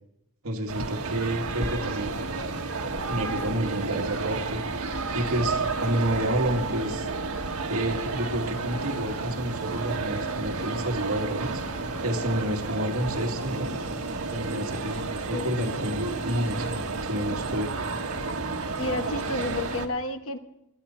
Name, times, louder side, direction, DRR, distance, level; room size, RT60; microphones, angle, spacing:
voice 1, 0.4-2.2 3.0-7.1 7.7-11.6 12.0-13.7 14.3-17.7, right 1 dB, 75° right, 1 dB, 2.3 m, -30 dB
sound 1, 0.7-19.9, right 3 dB, 90° right, 1.5 m, -31 dB
voice 2, 15.3-15.7 18.8-20.4, left 2 dB, 65° left, 8 dB, 1.2 m, -31 dB
21.5 x 14.0 x 4.5 m, 0.83 s
head